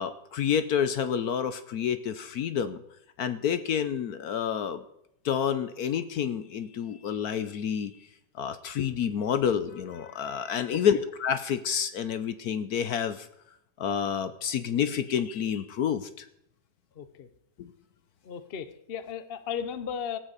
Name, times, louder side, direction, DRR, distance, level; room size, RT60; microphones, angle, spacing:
voice 1, 0.0-2.8 3.2-4.8 5.2-7.9 8.4-13.3 13.8-16.3 17.6-17.7, left 8 dB, 65° left, 11 dB, 1.1 m, -29 dB
voice 2, 10.7-11.0 16.9-17.3 18.2-20.2, left 7 dB, 45° left, 12 dB, 0.8 m, -36 dB
17.0 x 6.3 x 8.2 m, 0.78 s
omnidirectional pair, 1.9 m